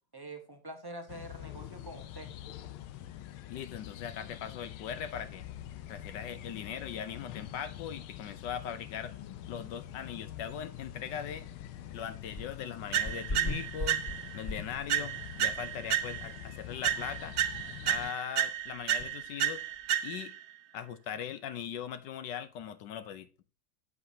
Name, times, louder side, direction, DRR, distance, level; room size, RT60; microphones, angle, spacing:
voice 1, 0.1-2.3, right 1 dB, 15° right, 0.8 m, -45 dB
sound 1, 1.1-18.1, left 11 dB, 90° left, 1.6 m, -45 dB
voice 2, 3.5-5.5 5.9-9.1 9.5-11.5 11.9-14.0 14.3-17.3 17.8-19.6 20.0-20.4 20.7-23.3, left 8 dB, 70° left, 1.2 m, -40 dB
sound 2, 12.3-12.7 13.0-15.2 15.6-15.7 16.2-16.3 16.6-16.7 17.1-17.2 19.0-19.1, left 2 dB, 30° left, 3.0 m, -38 dB
sound 3, 12.9-14.4 14.9-16.4 16.8-20.4, right 10 dB, 60° right, 1.1 m, -32 dB
8.0 x 7.6 x 2.7 m
omnidirectional pair, 2.3 m